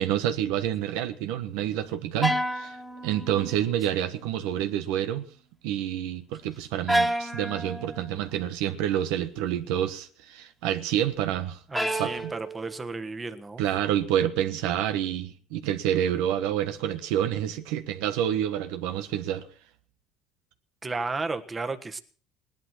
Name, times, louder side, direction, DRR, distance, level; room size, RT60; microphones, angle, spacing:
voice 1, 0.0-2.8 3.0-5.3 5.6-11.6 12.0-12.3 13.6-19.5, right 11 dB, 75° right, 1.2 m, -28 dB
sound 1, 2.2-3.9 4.2-4.8 6.9-8.1 11.7-12.9, equal, ahead, 1.8 m, -30 dB
voice 2, 11.7-13.6 20.8-22.0, right 3 dB, 20° right, 1.5 m, -33 dB
18.0 x 11.0 x 6.0 m
supercardioid pair, 100°, 0 cm